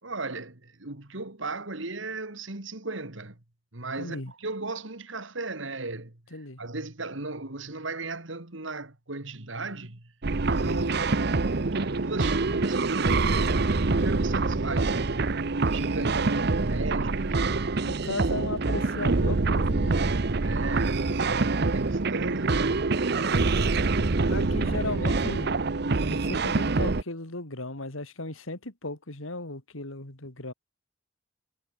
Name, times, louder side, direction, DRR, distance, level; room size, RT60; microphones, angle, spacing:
voice 1, 0.0-3.4 3.7-10.1 10.5-11.1 11.7-15.4 15.7-17.7 20.4-22.9 23.6-24.3, right 2 dB, 70° right, 2.5 m, -36 dB
voice 2, 4.0-4.3 6.3-6.6 17.9-20.0 24.3-25.5 26.1-30.5, left 2 dB, 90° left, 3.5 m, -36 dB
sound 1, 10.2-27.0, right 3 dB, 55° right, 0.8 m, -25 dB
head